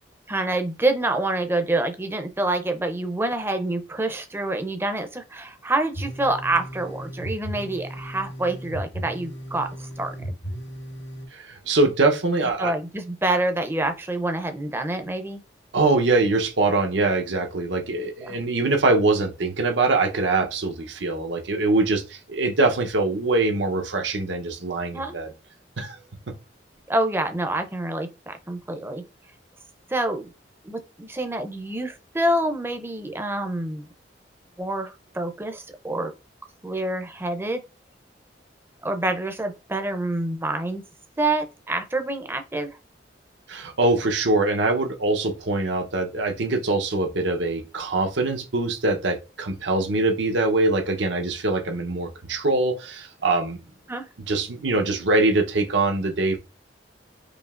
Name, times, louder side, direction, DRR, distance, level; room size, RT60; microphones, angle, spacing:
voice 1, 0.3-10.3 12.6-15.4 18.3-18.4 24.9-25.2 26.9-29.0 29.9-30.3 30.6-33.9 34.6-36.1 36.6-37.6 38.8-40.8 41.2-42.8 53.9-54.1, right 2 dB, 15° right, 0.5 m, -27 dB
sound 1, 5.9-11.3, right 1 dB, 70° left, 1.0 m, -36 dB
voice 2, 11.3-12.7 15.7-25.3 25.8-26.0 43.5-53.6 54.3-56.4, right 2 dB, 85° right, 0.8 m, -23 dB
5.0 x 2.8 x 2.4 m
head